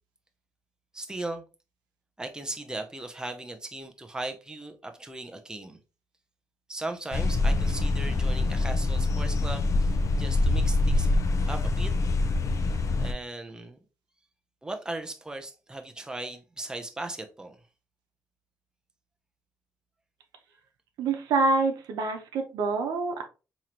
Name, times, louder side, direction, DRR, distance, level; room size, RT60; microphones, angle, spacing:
voice 1, 0.9-1.4 2.2-5.8 6.7-11.2 11.5-11.9 13.0-13.8 14.6-17.6, right 2 dB, 10° right, 0.6 m, -38 dB
sound 1, 7.1-13.1, left 2 dB, 50° left, 0.6 m, -25 dB
voice 2, 21.0-23.2, right 3 dB, 90° right, 0.8 m, -26 dB
3.7 x 3.0 x 2.9 m
cardioid pair, 90°, 7 cm